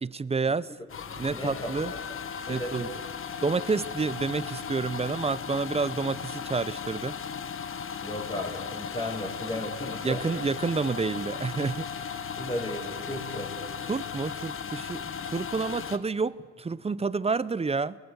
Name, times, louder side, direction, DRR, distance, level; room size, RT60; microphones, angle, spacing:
voice 1, 0.0-0.7 1.2-1.9 2.5-2.9 3.4-7.2 10.0-11.9 13.9-18.0, right 4 dB, 20° right, 19 dB, 0.6 m, -29 dB
sound 1, 0.9-16.0, left 7 dB, 45° left, 1.2 m, -36 dB
voice 2, 1.3-1.7 2.5-2.9 8.0-10.5 12.4-13.5, left 1 dB, 15° left, -7 dB, 7.1 m, -35 dB
29.0 x 21.5 x 7.0 m, 1.5 s
cardioid pair, 90°, 30 cm